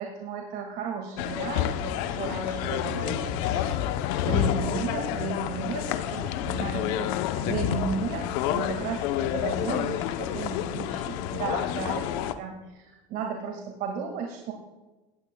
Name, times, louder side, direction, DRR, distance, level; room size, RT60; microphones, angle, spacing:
voice 1, 0.0-3.6 3.9-14.5, right 5 dB, 65° right, 2 dB, 2.0 m, -34 dB
sound 1, 1.2-12.3, left 10 dB, 70° left, 0.8 m, -29 dB
17.5 x 12.5 x 2.3 m, 1.2 s
supercardioid pair, 105°, 17 cm